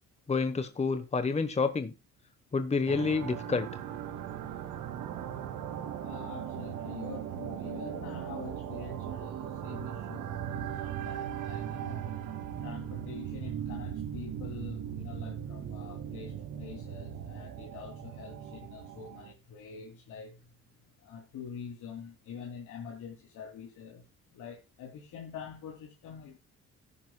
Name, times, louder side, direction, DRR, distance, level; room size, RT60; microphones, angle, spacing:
voice 1, 0.3-1.9 2.5-3.7, left 4 dB, 20° left, 1.0 m, -29 dB
sound 1, 2.9-19.3, right 9 dB, 85° right, 2.1 m, -38 dB
voice 2, 6.0-12.1 12.6-20.4 21.0-24.0 24.3-26.4, left 7 dB, 80° left, 2.8 m, -46 dB
14.5 x 11.0 x 2.2 m
cardioid pair, 90°, 30 cm